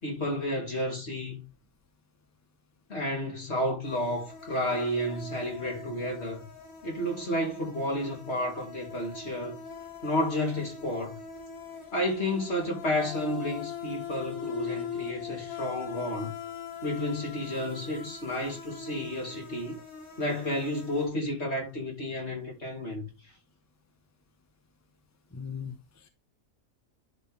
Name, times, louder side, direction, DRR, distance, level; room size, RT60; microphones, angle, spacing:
voice 1, 0.0-1.4 2.9-6.5 6.8-9.6 10.0-11.2 11.9-16.3 16.8-19.8 20.2-23.1, left 1 dB, 50° left, 3.0 m, -31 dB
sound 1, 3.8-21.1, left 7 dB, 65° left, 3.5 m, -42 dB
voice 2, 25.3-26.1, left 7 dB, 15° left, 0.8 m, -39 dB
11.0 x 4.5 x 3.5 m
omnidirectional pair, 1.5 m